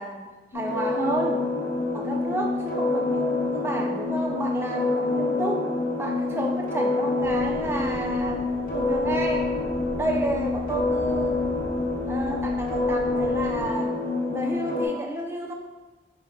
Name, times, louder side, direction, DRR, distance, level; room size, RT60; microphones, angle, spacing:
voice 1, 0.0-1.5 1.9-8.4 8.7-9.5 10.0-11.6 12.1-14.0 14.3-15.5, right 2 dB, 15° right, 2 dB, 0.4 m, -31 dB
sound 1, 0.5-14.9, left 3 dB, 45° left, 0.7 m, -27 dB
sound 2, 7.2-13.7, equal, 10° left, 0.9 m, -40 dB
4.9 x 4.5 x 2.3 m, 1.2 s
head